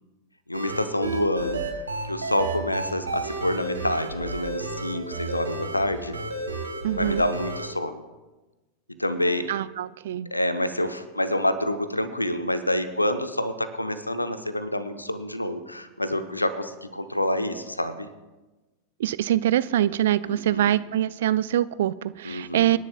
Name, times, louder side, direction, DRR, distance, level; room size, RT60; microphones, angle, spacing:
voice 1, 0.5-6.2 7.0-8.0 9.0-9.5 10.3-18.1 20.2-20.7 22.2-22.8, left 1 dB, 85° left, 11 dB, 0.8 m, -27 dB
sound 1, 0.5-7.7, right 2 dB, 75° right, 1.7 m, -32 dB
voice 2, 6.8-7.2 9.5-10.3 19.0-22.8, right 12 dB, 60° right, 17 dB, 0.4 m, -24 dB
26.0 x 10.5 x 2.3 m, 1.1 s
figure-of-eight pair, 90°, 0 cm